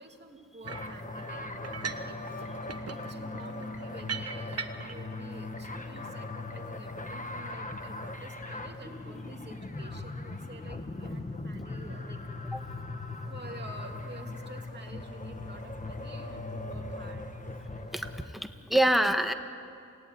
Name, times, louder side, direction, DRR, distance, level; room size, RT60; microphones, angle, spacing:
voice 1, 0.0-12.2 12.4-12.7 13.3-17.3, right 2 dB, 30° right, 2 dB, 2.8 m, -49 dB
sound 1, 0.6-18.3, left 2 dB, 25° left, 1.6 m, -39 dB
sound 2, 0.7-1.0 1.6-2.1 2.4-5.0, right 5 dB, 50° right, 1.2 m, -39 dB
voice 2, 17.9-19.3, right 1 dB, ahead, 7 dB, 1.5 m, -26 dB
28.5 x 18.0 x 9.6 m, 2.5 s
wide cardioid pair, 105°, 33 cm